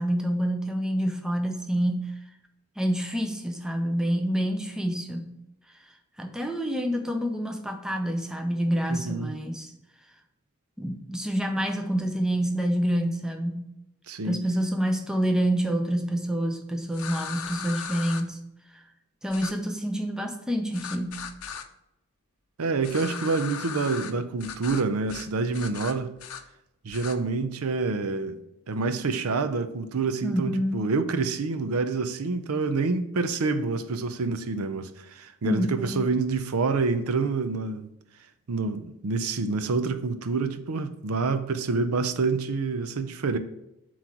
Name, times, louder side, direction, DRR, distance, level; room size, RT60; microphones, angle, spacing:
voice 1, 0.0-2.1 2.8-5.3 6.2-9.7 10.8-13.7 14.2-18.4 18.7-18.8 19.2-21.2 30.2-30.9 35.4-36.0, equal, 5° right, 0.5 m, -27 dB
voice 2, 8.9-9.3 14.1-14.4 22.6-26.1 26.8-28.4 28.7-37.9 38.5-43.4, right 4 dB, 80° right, 0.6 m, -27 dB
sound 1, 16.9-18.2 19.3-19.5 20.7-21.7 22.8-24.1 24.4-24.8 25.1-25.3 25.5-26.4 26.9-27.2, left 7 dB, 75° left, 0.6 m, -37 dB
7.7 x 3.1 x 5.9 m
head